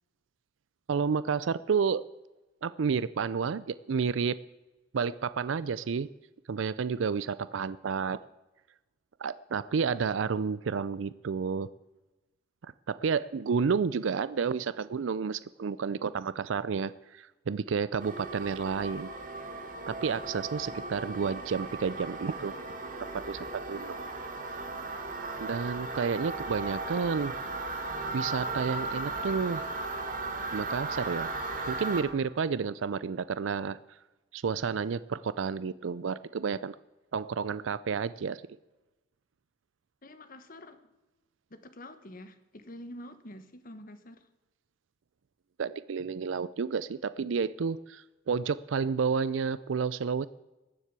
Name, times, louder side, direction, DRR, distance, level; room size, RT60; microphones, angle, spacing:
voice 1, 0.9-2.1 2.6-4.3 4.9-6.1 6.5-8.2 9.2-11.7 12.9-19.1 19.9-22.7 23.0-24.0 25.4-27.3 28.1-29.6 30.5-31.3 31.7-33.8 34.3-36.8 37.1-38.4 45.6-50.3, right 5 dB, 70° right, 17 dB, 0.4 m, -30 dB
sound 1, 18.0-32.0, right 3 dB, 45° right, 2.3 m, -36 dB
voice 2, 40.0-40.9 41.5-44.3, left 1 dB, 45° left, 11 dB, 1.3 m, -47 dB
19.0 x 7.5 x 8.2 m, 1.1 s
head